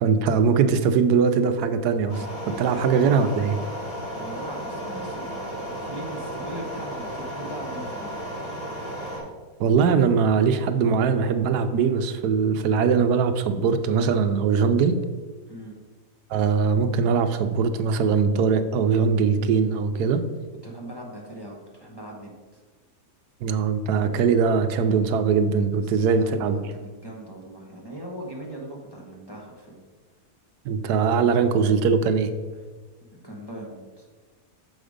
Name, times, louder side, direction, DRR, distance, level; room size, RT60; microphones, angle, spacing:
voice 1, 0.0-2.3 2.6-3.6 9.6-15.0 16.3-20.2 23.4-26.6 30.6-32.3, right 6 dB, 85° right, 9 dB, 1.2 m, -21 dB
sound 1, 2.1-9.2, equal, 65° left, 2.6 m, -34 dB
voice 2, 4.2-8.2 15.5-15.8 20.6-22.6 26.0-29.8 33.1-34.1, right 1 dB, 20° left, -3 dB, 1.0 m, -40 dB
6.4 x 5.2 x 5.0 m, 1.4 s
omnidirectional pair, 1.7 m